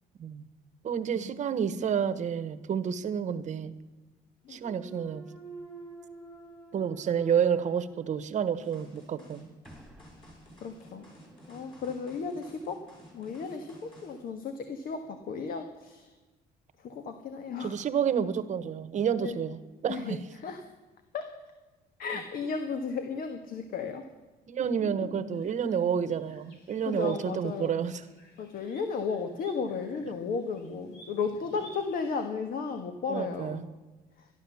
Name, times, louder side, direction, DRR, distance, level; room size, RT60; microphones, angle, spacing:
voice 1, 0.8-3.7 4.5-5.3 6.7-9.5 17.6-20.2 24.5-28.0 33.1-33.6, right 8 dB, 45° right, 11 dB, 1.1 m, -29 dB
Thump thud, 4.5-8.5 9.0-13.7, right 2 dB, 5° left, 2.5 m, -50 dB
sound 1, 8.6-14.2, equal, 30° left, 6.5 m, -54 dB
voice 2, 10.6-11.1 11.5-12.8 13.1-16.1 16.8-17.8 19.2-19.4 19.9-20.6 21.1-21.3 22.0-24.0 24.6-25.5 26.8-27.8 28.4-33.6 34.2-34.3, left 5 dB, 60° left, 7 dB, 1.4 m, -34 dB
sound 2, 25.3-32.3, right 1 dB, 85° left, 3.8 m, -56 dB
13.5 x 11.5 x 7.1 m, 1.2 s
cardioid pair, 110°, 17 cm